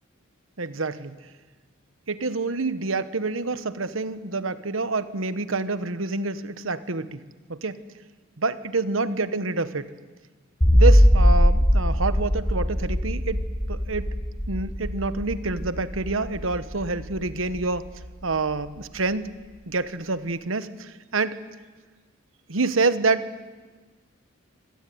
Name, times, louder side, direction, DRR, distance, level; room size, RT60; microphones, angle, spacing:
voice 1, 0.6-1.2 2.1-7.2 7.5-7.8 8.4-9.9 10.7-13.4 13.7-14.1 14.5-17.9 18.2-19.3 19.7-21.4 22.5-23.4, right 3 dB, 75° right, 13 dB, 1.3 m, -27 dB
sound 1, 10.6-17.8, equal, 25° left, 6.7 m, -21 dB
26.5 x 18.0 x 9.6 m, 1.4 s
head